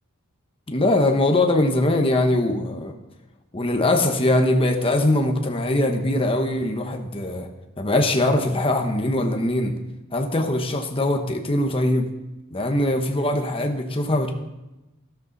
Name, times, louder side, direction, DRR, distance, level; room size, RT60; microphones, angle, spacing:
voice 1, 0.7-2.9 3.5-7.5 7.8-9.7 10.1-12.1 12.5-14.3, left 1 dB, 25° left, 4 dB, 1.2 m, -21 dB
13.0 x 12.5 x 4.1 m, 1.0 s
head